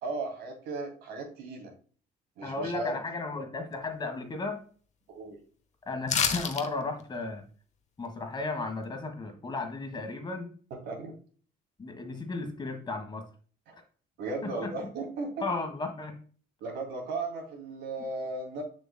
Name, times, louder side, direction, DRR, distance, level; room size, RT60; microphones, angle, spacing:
voice 1, 0.0-1.7 2.4-3.0 5.1-5.4 10.7-11.2 13.7-13.8 14.2-15.3 16.6-18.6, right 2 dB, 80° right, 3 dB, 2.5 m, -36 dB
voice 2, 2.4-4.6 5.9-7.4 8.0-10.5 11.8-13.3 14.4-14.7 15.4-16.2, left 3 dB, 25° left, 6 dB, 1.5 m, -34 dB
sound 1, 6.1-6.7 7.0-7.1, left 6 dB, 45° left, 0.9 m, -27 dB
7.0 x 6.0 x 2.3 m, 0.41 s
cardioid pair, 110°, 17 cm